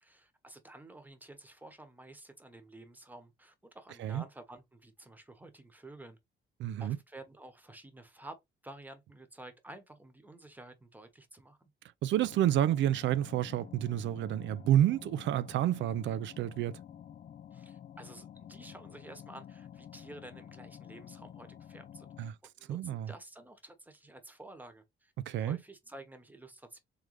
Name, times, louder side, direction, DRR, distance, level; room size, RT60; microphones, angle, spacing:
voice 1, 0.0-6.2 6.8-8.4 8.6-11.7 17.5-22.3 22.6-26.8, right 1 dB, 10° right, 1.0 m, -51 dB
voice 2, 6.6-7.0 12.0-16.7 22.2-22.3 22.7-23.1 25.3-25.6, right 11 dB, 70° right, 0.4 m, -29 dB
sound 1, 12.2-22.3, left 9 dB, 40° left, 0.4 m, -50 dB
3.8 x 3.2 x 3.1 m
cardioid pair, 90°, 20 cm